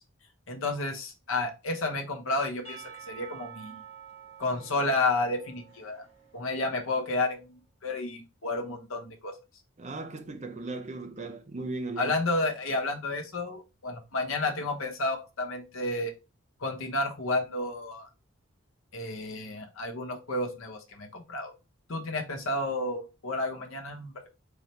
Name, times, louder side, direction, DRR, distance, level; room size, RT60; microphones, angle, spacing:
voice 1, 0.5-3.8 4.4-6.1 6.3-9.4 12.0-16.1 16.6-18.1 18.9-21.5 21.9-24.3, left 2 dB, 80° left, 0.9 m, -31 dB
Percussion / Church bell, 2.6-6.8, right 7 dB, 30° left, 1.5 m, -48 dB
voice 2, 9.8-12.1, right 2 dB, 35° right, 0.6 m, -37 dB
4.0 x 3.2 x 2.9 m
head